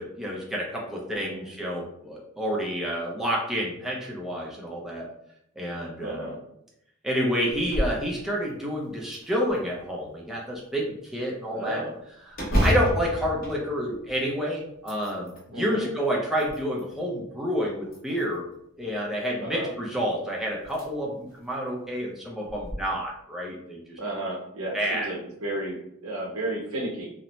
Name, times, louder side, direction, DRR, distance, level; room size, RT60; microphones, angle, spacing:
voice 1, 0.0-5.1 5.6-6.3 7.0-11.8 12.6-18.5 18.8-24.0 24.7-25.1, equal, ahead, -4 dB, 0.4 m, -29 dB
voice 2, 1.1-1.5 6.0-6.4 11.5-11.9 15.5-15.9 19.4-19.7 24.0-27.1, right 1 dB, 90° right, -2 dB, 0.8 m, -33 dB
sound 1, 7.5-8.0 8.5-8.6 9.1-9.9 12.3-14.3 14.7-15.5 16.1-17.0 17.9-18.5 20.0-20.1 20.6-20.9 21.3-21.4 22.5-22.7, equal, 45° left, 0.7 m, -29 dB
2.6 x 2.0 x 3.0 m, 0.76 s
head